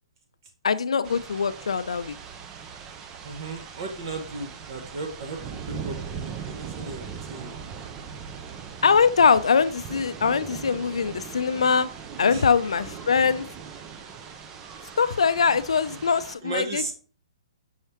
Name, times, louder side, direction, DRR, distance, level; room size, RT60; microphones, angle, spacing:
voice 1, 0.6-2.2 8.8-11.9 12.2-13.5 15.0-16.9, left 6 dB, 90° left, 14 dB, 0.4 m, -22 dB
sound 1, 1.0-16.4, right 7 dB, 15° right, 0.3 m, -40 dB
voice 2, 3.2-7.5 12.3-12.4 14.7-14.9 15.5-15.6 15.9-16.0 16.4-16.9, right 3 dB, 40° right, 3 dB, 0.8 m, -36 dB
5.5 x 3.2 x 3.0 m, 0.41 s
hypercardioid pair, 165°, 3 cm